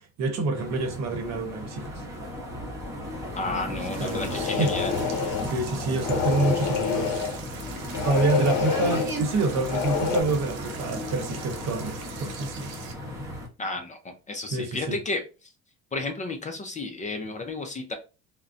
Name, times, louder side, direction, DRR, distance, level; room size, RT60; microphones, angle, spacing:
voice 1, 0.2-2.0 3.7-4.7 5.4-7.4 8.0-12.7 14.5-15.0, right 3 dB, 55° right, 0.9 m, -27 dB
sound 1, 0.5-13.5, equal, 10° right, 0.8 m, -35 dB
voice 2, 3.4-5.0 13.6-15.5 15.9-17.9, left 3 dB, 25° left, 0.4 m, -32 dB
sound 2, 3.9-12.9, right 6 dB, 85° right, 0.7 m, -44 dB
sound 3, 4.0-5.5 6.0-7.4 7.9-9.1 9.6-10.2, left 6 dB, 75° left, 0.6 m, -27 dB
2.5 x 2.1 x 2.4 m
supercardioid pair, 100°, 32 cm